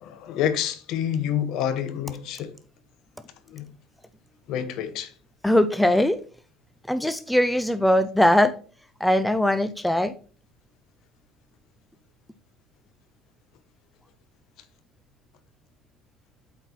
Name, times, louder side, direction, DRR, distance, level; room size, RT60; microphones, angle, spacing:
voice 1, 0.0-2.5 3.5-3.6 4.5-5.1, left 9 dB, 60° left, 1.0 m, -28 dB
voice 2, 5.4-6.2 6.9-8.5 9.0-10.1, left 1 dB, 5° left, 0.4 m, -20 dB
8.1 x 4.4 x 4.3 m
cardioid pair, 125°, 0 cm